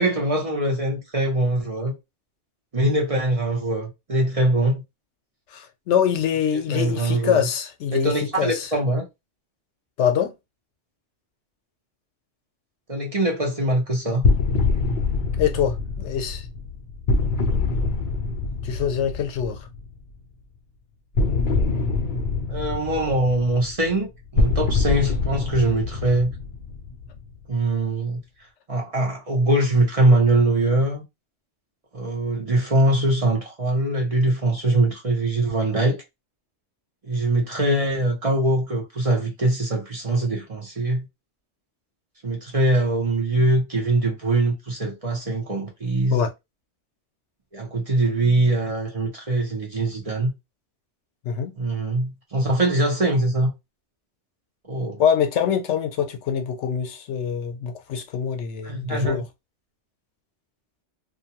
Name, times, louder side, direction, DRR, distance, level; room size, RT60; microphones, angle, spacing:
voice 1, 0.0-1.9 2.7-4.8 6.5-7.5 7.9-9.0 12.9-14.2 22.5-26.3 27.5-28.2 28.7-31.0 31.9-36.0 37.1-41.0 42.2-46.2 47.5-50.3 51.6-53.5 54.7-55.0 58.6-59.2, right 2 dB, 35° right, 0.8 m, -22 dB
voice 2, 5.5-8.7 10.0-10.3 15.4-16.5 18.6-19.7 46.1-46.3 51.2-51.5 55.0-59.3, left 8 dB, 80° left, 0.9 m, -24 dB
sound 1, 14.2-20.0 21.1-27.4, left 3 dB, 55° left, 0.6 m, -25 dB
2.6 x 2.2 x 2.8 m
omnidirectional pair, 1.2 m